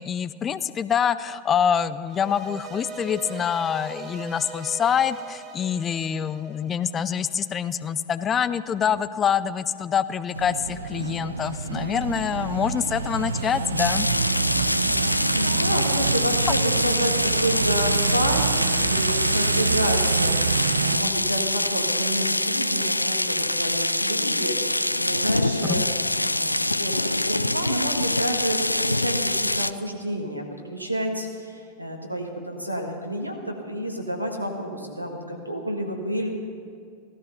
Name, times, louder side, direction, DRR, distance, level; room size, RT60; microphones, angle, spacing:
voice 1, 0.0-14.1 25.7-25.8, left 8 dB, 25° left, 15 dB, 0.5 m, -25 dB
sound 1, 2.1-7.3, right 2 dB, 30° right, 1.9 m, -40 dB
sound 2, 10.3-21.0, right 5 dB, 75° right, 0.6 m, -26 dB
sound 3, 13.8-29.7, left 1 dB, 85° left, 0.3 m, -25 dB
voice 2, 15.3-36.3, equal, 90° right, 2 dB, 1.8 m, -30 dB
16.0 x 13.0 x 5.7 m, 2.3 s
figure-of-eight pair, 90°, 0 cm